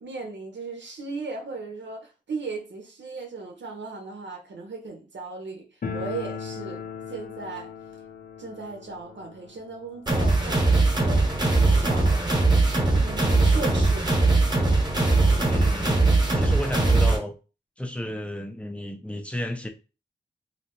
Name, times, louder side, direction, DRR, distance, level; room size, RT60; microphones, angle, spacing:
voice 1, 0.0-5.7 5.9-6.8 7.1-7.7 8.4-11.3 11.8-12.3 12.9-14.0, right 4 dB, 75° right, 0.7 m, -36 dB
sound 1, 5.8-12.5 12.8-12.9 13.1-13.2 14.0-14.1 14.4-15.6, left 5 dB, 50° left, 0.6 m, -39 dB
sound 2, 10.1-17.2, right 3 dB, 25° right, 1.0 m, -20 dB
voice 2, 15.5-17.3 17.8-19.7, left 1 dB, 5° left, 0.5 m, -33 dB
3.1 x 2.7 x 3.0 m
wide cardioid pair, 125°, 19 cm